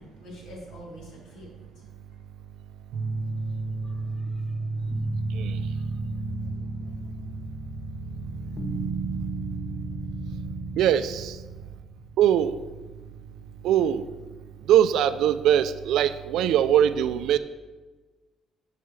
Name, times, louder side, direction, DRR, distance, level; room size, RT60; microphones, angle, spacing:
voice 1, 0.0-1.5 3.8-4.6 5.8-5.9 6.2-6.3, equal, 60° left, -4 dB, 2.6 m, -46 dB
sound 1, 2.9-14.1, right 2 dB, 90° right, 0.8 m, -35 dB
sound 2, 4.9-11.9, right 3 dB, 10° left, 0.9 m, -35 dB
voice 2, 10.8-11.4 12.2-12.5 13.6-14.0 14.7-17.4, right 10 dB, 75° right, 12 dB, 0.4 m, -21 dB
11.5 x 5.6 x 3.2 m, 1.3 s
cardioid pair, 170°, 0 cm